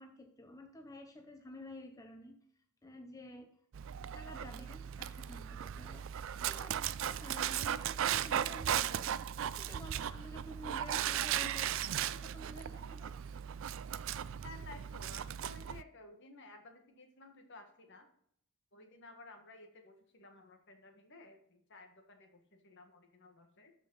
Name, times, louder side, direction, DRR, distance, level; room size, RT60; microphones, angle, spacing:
voice 1, 0.0-3.5 4.1-13.2, left 1 dB, 15° left, 4 dB, 0.7 m, -51 dB
Dog, 3.7-15.8, right 10 dB, 60° right, 0.4 m, -37 dB
voice 2, 14.4-18.1 18.7-23.7, left 3 dB, 55° left, 5 dB, 1.6 m, -55 dB
13.0 x 5.3 x 3.9 m, 0.66 s
head